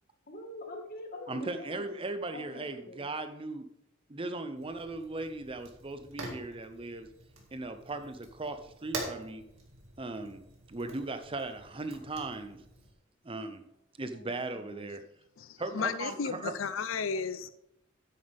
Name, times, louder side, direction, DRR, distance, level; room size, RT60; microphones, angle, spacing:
voice 1, 0.3-1.9 2.3-3.1 14.1-14.9, left 1 dB, 45° left, 1.8 m, -45 dB
voice 2, 1.3-3.7 4.1-7.1 7.5-9.4 10.0-12.6 13.2-13.6 14.0-15.0 15.6-16.5, right 2 dB, 25° right, 0.7 m, -38 dB
Fire, 4.5-12.9, right 2 dB, 80° right, 2.3 m, -46 dB
voice 3, 15.4-17.5, left 5 dB, 85° left, 0.6 m, -34 dB
9.6 x 9.1 x 3.5 m
head